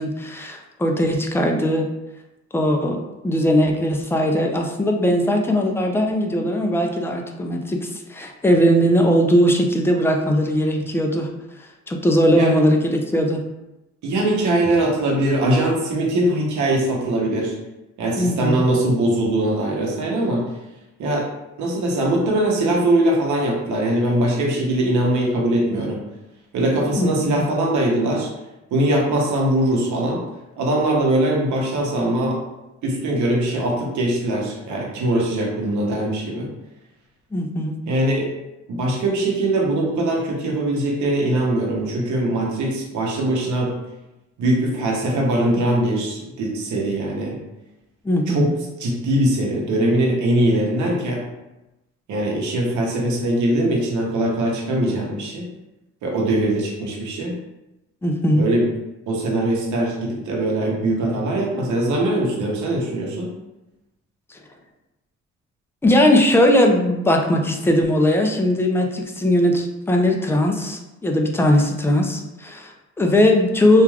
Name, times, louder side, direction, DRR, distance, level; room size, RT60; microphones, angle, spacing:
voice 1, 0.0-1.9 2.5-11.3 11.9-13.4 18.2-18.6 27.0-27.5 37.3-37.8 48.0-48.5 58.0-58.5 64.3-64.4 65.8-73.8, equal, 10° left, 3 dB, 0.3 m, -19 dB
voice 2, 14.0-17.5 18.0-20.5 21.0-21.3 21.6-26.0 26.5-28.3 28.7-30.2 30.6-32.4 32.8-36.5 37.9-38.3 38.7-43.7 44.4-47.4 48.3-48.5 48.8-51.2 52.1-55.5 56.0-57.4 58.3-58.7 59.1-63.3, right 1 dB, 75° right, -1 dB, 0.8 m, -21 dB
3.1 x 2.4 x 2.3 m, 0.97 s
cardioid pair, 90°, 30 cm